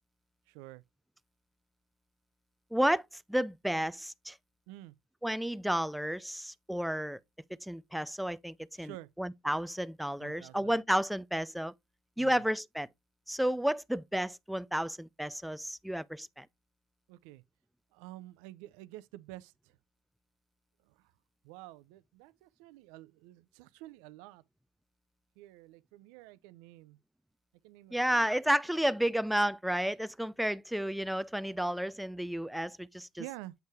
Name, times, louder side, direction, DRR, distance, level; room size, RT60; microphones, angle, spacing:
voice 1, 0.5-0.8 4.7-5.0 8.8-9.1 10.2-10.8 12.2-12.4 17.1-17.4 17.9-19.8 20.8-21.1 21.4-24.4 25.4-27.0 27.6-28.3 33.2-33.5, right 17 dB, 80° right, 0.4 m, -49 dB
voice 2, 2.7-4.4 5.2-7.2 7.6-11.7 12.2-12.9 13.3-16.5 27.9-33.2, equal, ahead, 0.4 m, -32 dB
8.0 x 2.7 x 4.7 m
supercardioid pair, 100°, 0 cm